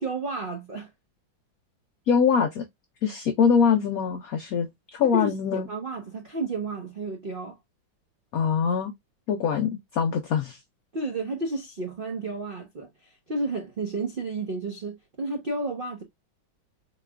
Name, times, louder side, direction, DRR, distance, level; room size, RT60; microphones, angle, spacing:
voice 1, 0.0-0.9 5.0-7.5 10.9-12.9 13.3-16.0, right 3 dB, 85° right, 0.4 m, -32 dB
voice 2, 2.1-2.6 3.0-5.7 8.3-8.9 9.3-10.6, left 6 dB, 85° left, 0.7 m, -23 dB
4.0 x 2.9 x 2.3 m
omnidirectional pair, 2.1 m